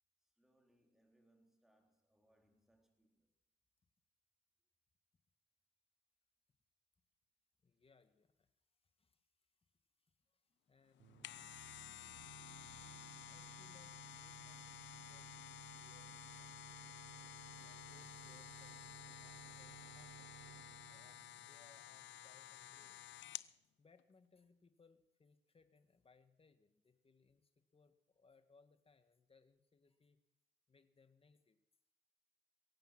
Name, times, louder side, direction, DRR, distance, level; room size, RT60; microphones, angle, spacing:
voice 1, 0.2-3.3 10.5-10.7, right 1 dB, ahead, 3.8 m, -76 dB
voice 2, 7.6-8.5 9.0-9.3 10.0-11.4 13.3-16.8 17.6-20.6 20.8-23.0 23.8-30.2 30.7-31.6, left 4 dB, 30° left, 1.6 m, -70 dB
sound 1, 11.0-23.5 24.0-24.1, left 13 dB, 70° left, 0.6 m, -53 dB
sound 2, 11.0-22.6, right 12 dB, 65° right, 0.7 m, -59 dB
22.5 x 9.0 x 6.0 m
cardioid pair, 90°, 20 cm